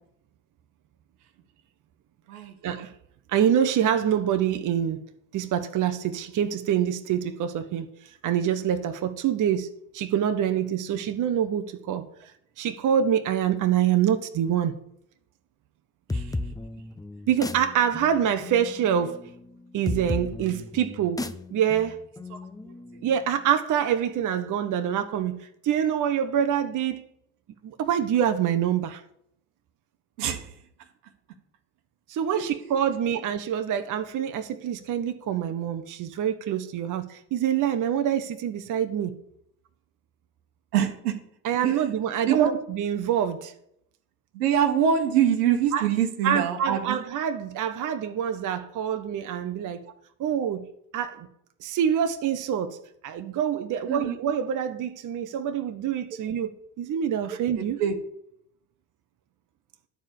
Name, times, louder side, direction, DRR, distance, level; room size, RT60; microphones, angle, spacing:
voice 1, 3.3-5.0 5.3-7.9 8.2-9.7 9.9-12.0 12.6-14.7 17.3-19.2 19.7-22.0 23.0-27.0 27.6-29.0 32.1-39.2 41.4-43.5 45.7-45.9 46.2-49.8 50.2-50.7 50.9-51.3 51.6-52.8 53.0-56.5 56.8-57.8, right 9 dB, 45° right, 0.9 m, -26 dB
sound 1, 16.1-23.5, left 2 dB, 10° left, 0.7 m, -35 dB
voice 2, 30.2-30.5 32.3-32.7 40.7-41.2 41.6-41.9 42.2-42.5 44.3-47.0 53.9-54.1 57.5-57.9, right 8 dB, 80° right, 1.4 m, -24 dB
10.5 x 4.7 x 8.1 m
hypercardioid pair, 70°, 45 cm